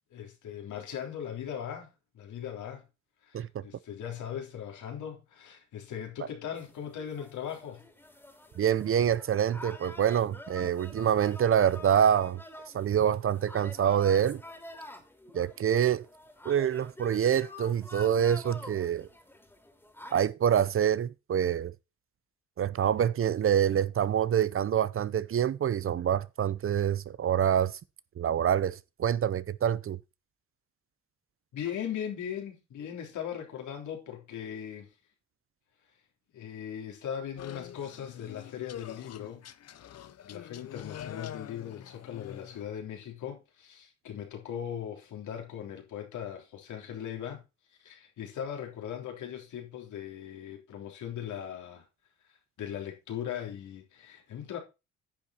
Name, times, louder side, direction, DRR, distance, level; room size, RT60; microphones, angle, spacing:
voice 1, 0.1-1.9 2.1-2.8 3.2-7.8 31.5-34.9 36.3-39.5 40.2-47.4 47.8-51.8 52.6-54.6, left 9 dB, 75° left, 3.6 m, -39 dB
sound 1, 6.6-20.2, left 1 dB, 5° left, 2.9 m, -48 dB
voice 2, 8.6-12.4 12.7-14.4 15.3-16.1 16.4-19.1 20.1-21.7 22.6-27.8 28.2-30.0, right 9 dB, 45° right, 0.7 m, -26 dB
sound 2, 37.4-42.6, left 10 dB, 55° left, 0.8 m, -44 dB
10.0 x 7.0 x 4.3 m
cardioid pair, 90°, 30 cm